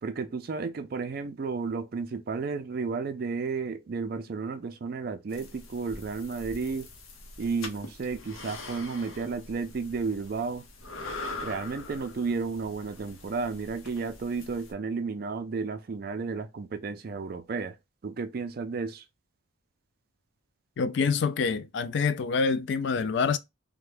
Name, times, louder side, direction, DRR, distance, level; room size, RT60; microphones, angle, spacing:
voice 1, 0.0-6.9 7.4-10.6 11.4-17.7 18.0-19.0, right 4 dB, 45° right, 0.3 m, -32 dB
sound 1, 5.3-14.7, left 3 dB, 90° left, 0.7 m, -43 dB
voice 2, 20.8-23.4, left 5 dB, 60° left, 0.3 m, -26 dB
3.4 x 2.1 x 3.3 m
head